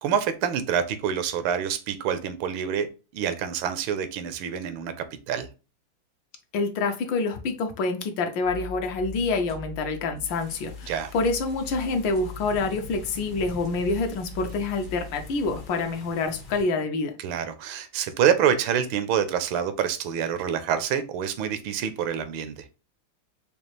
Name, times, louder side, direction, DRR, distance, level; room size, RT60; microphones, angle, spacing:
voice 1, 0.0-2.9 3.1-4.9 5.3-5.5 10.9-11.1 17.2-22.5, right 8 dB, 80° right, 1.3 m, -26 dB
voice 2, 6.5-17.1, left 3 dB, 70° left, 1.3 m, -27 dB
sound 1, 8.4-15.6, left 4 dB, 45° right, 0.5 m, -41 dB
sound 2, 10.2-16.6, left 2 dB, 50° left, 0.5 m, -47 dB
5.2 x 2.4 x 3.0 m
omnidirectional pair, 2.2 m